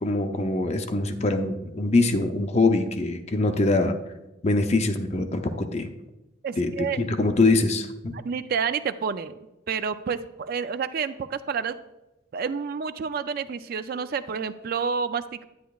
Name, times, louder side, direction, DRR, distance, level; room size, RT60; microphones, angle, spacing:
voice 1, 0.0-3.9 4.4-5.9 6.6-8.1, left 2 dB, 35° left, 7 dB, 0.5 m, -23 dB
voice 2, 6.4-7.0 8.1-9.4 9.7-11.8 12.3-15.4, right 6 dB, 45° right, 12 dB, 0.3 m, -29 dB
10.5 x 9.0 x 2.3 m, 0.99 s
head